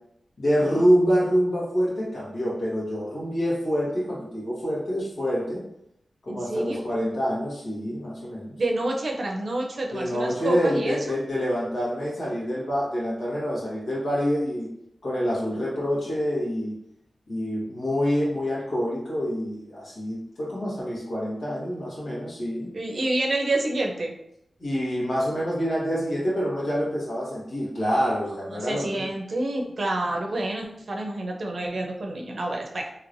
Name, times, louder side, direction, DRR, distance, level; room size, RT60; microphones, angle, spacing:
voice 1, 0.4-5.6 6.2-8.6 9.9-14.7 15.0-16.7 17.3-22.7 24.6-29.1, equal, 80° left, -6 dB, 1.3 m, -26 dB
voice 2, 6.3-6.8 8.6-11.0 22.7-24.1 28.5-33.0, right 2 dB, 65° right, 1 dB, 0.6 m, -28 dB
3.1 x 2.8 x 2.6 m, 0.79 s
wide cardioid pair, 70°, 0 cm